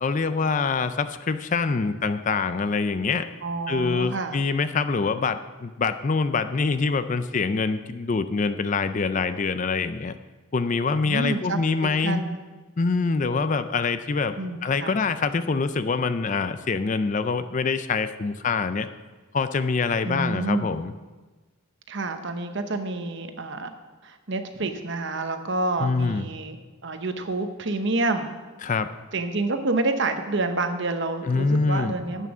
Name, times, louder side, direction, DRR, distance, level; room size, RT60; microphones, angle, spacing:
voice 1, 0.0-3.3 3.7-10.2 10.5-12.2 12.8-14.3 14.6-18.9 19.3-20.9 25.8-26.3 28.6-28.9 31.2-31.9, left 4 dB, 35° left, 12 dB, 0.4 m, -25 dB
voice 2, 3.4-4.4 11.0-12.4 14.4-15.0 20.0-20.7 21.9-23.7 24.0-26.6 26.8-28.4 29.1-32.3, right 2 dB, 55° right, 7 dB, 1.0 m, -28 dB
11.0 x 8.3 x 6.1 m, 1.3 s
head